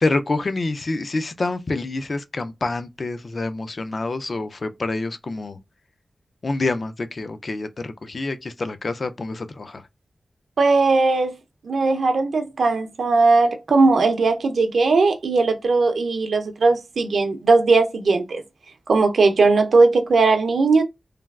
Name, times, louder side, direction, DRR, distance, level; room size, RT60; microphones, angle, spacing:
voice 1, 0.0-5.6 6.4-9.9, left 3 dB, 45° left, 0.3 m, -27 dB
voice 2, 10.6-11.3 11.6-18.4 18.9-20.8, right 3 dB, 80° right, 0.5 m, -18 dB
3.2 x 2.3 x 2.2 m
wide cardioid pair, 140°, 0 cm